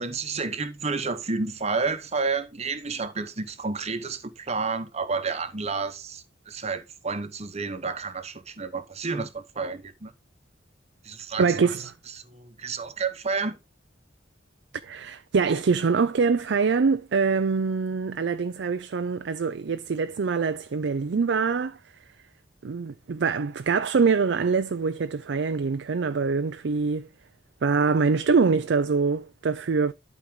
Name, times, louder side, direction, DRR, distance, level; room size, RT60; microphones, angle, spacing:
voice 1, 0.0-10.1 11.0-11.4 12.2-13.6, right 4 dB, 35° right, 1.1 m, -30 dB
voice 2, 11.4-11.8 14.8-21.8 22.6-27.1 27.6-29.9, right 5 dB, 65° right, 0.5 m, -24 dB
11.5 x 4.6 x 3.7 m
head